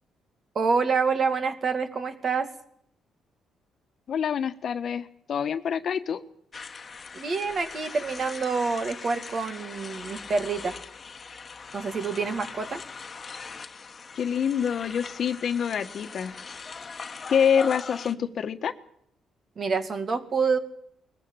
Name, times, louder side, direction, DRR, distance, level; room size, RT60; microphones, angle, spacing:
voice 1, 0.5-2.5 7.1-10.8 11.7-12.8 19.6-20.6, right 4 dB, 45° right, 9 dB, 2.3 m, -27 dB
voice 2, 4.1-6.2 14.1-16.3 17.3-18.7, left 7 dB, 60° left, 10 dB, 1.3 m, -26 dB
sound 1, 6.5-18.1, left 5 dB, 35° left, 1.4 m, -41 dB
20.5 x 15.0 x 9.0 m, 0.70 s
cardioid pair, 90°, 0 cm